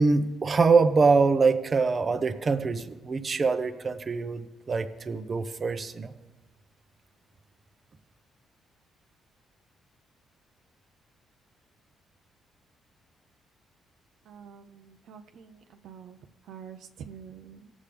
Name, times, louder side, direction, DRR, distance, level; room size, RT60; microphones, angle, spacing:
voice 1, 0.0-6.1, right 4 dB, 40° right, 9 dB, 0.7 m, -24 dB
voice 2, 14.2-16.2 16.4-17.7, right 7 dB, 80° right, 5 dB, 0.6 m, -47 dB
18.0 x 7.3 x 3.4 m, 1.2 s
cardioid pair, 90°, 0 cm